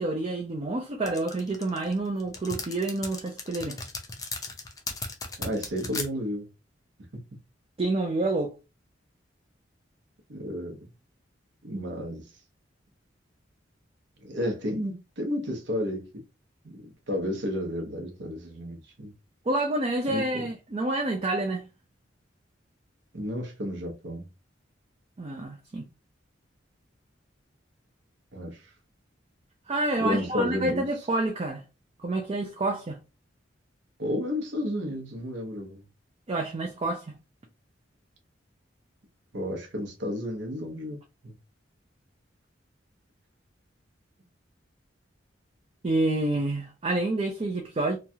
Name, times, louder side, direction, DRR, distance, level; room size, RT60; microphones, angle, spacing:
voice 1, 0.0-3.8 7.8-8.5 19.5-21.6 25.2-25.8 29.7-31.6 32.0-33.0 36.3-37.2 45.8-48.0, right 2 dB, 30° right, 0.5 m, -28 dB
Button Mashing, 1.1-6.1, left 3 dB, 20° left, 0.5 m, -36 dB
voice 2, 5.4-6.5 10.3-10.8 11.6-12.3 14.2-16.2 16.6-19.1 20.1-20.5 23.1-24.3 28.3-28.6 30.0-30.8 34.0-35.8 39.3-41.0 41.2-41.3, left 1 dB, 70° right, 0.9 m, -32 dB
3.1 x 2.3 x 2.6 m
head